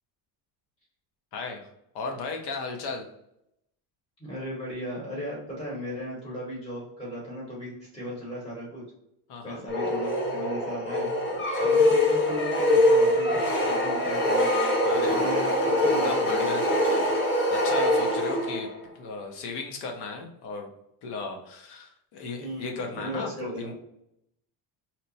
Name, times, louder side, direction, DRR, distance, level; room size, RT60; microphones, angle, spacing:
voice 1, 1.3-1.7 1.9-3.0 9.3-9.6 11.4-11.7 14.8-15.2 15.8-17.0 17.5-18.7 18.9-20.7 21.0-23.7, left 4 dB, 65° left, 3 dB, 0.8 m, -36 dB
voice 2, 4.2-8.8 9.4-11.1 11.6-14.5 14.9-16.1 22.4-23.7, equal, 10° left, -5 dB, 1.0 m, -36 dB
sound 1, 9.7-18.8, left 1 dB, 30° left, 0.6 m, -23 dB
2.9 x 2.1 x 4.0 m, 0.79 s
cardioid pair, 145°, 43 cm